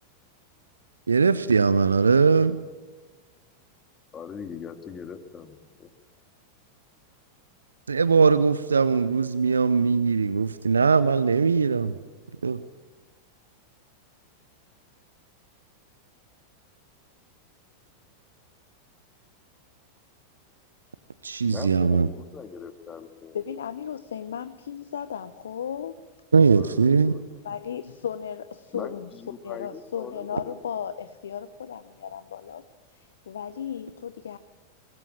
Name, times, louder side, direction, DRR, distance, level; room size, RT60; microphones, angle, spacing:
voice 1, 1.1-2.6 7.9-11.9 12.4-12.6 21.2-22.1 26.3-27.1, right 5 dB, 75° right, 15 dB, 0.8 m, -20 dB
voice 2, 4.1-5.9 21.5-23.4 26.5-27.4 28.7-30.5, left 6 dB, 20° left, 9 dB, 2.2 m, -41 dB
voice 3, 23.3-26.0 27.4-29.1 29.4-32.6 32.9-34.4, left 8 dB, 65° left, 14 dB, 0.9 m, -35 dB
24.0 x 20.0 x 8.9 m, 1.3 s
figure-of-eight pair, 90°, 0 cm